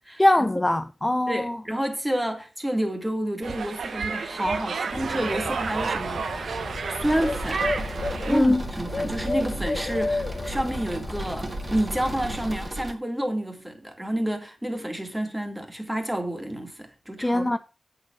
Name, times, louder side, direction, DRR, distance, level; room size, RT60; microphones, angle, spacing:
voice 1, 0.2-1.6 8.3-8.6 17.2-17.6, left 1 dB, 15° left, 0.5 m, -22 dB
voice 2, 1.3-7.8 8.3-17.6, right 1 dB, 10° right, 2.2 m, -29 dB
sound 1, 3.4-8.4, right 5 dB, 80° right, 0.9 m, -31 dB
Bird, 4.9-12.7, left 3 dB, 45° left, 0.9 m, -33 dB
sound 2, 7.0-12.9, right 2 dB, 30° right, 1.7 m, -35 dB
8.3 x 6.7 x 5.6 m
wide cardioid pair, 100°, 0 cm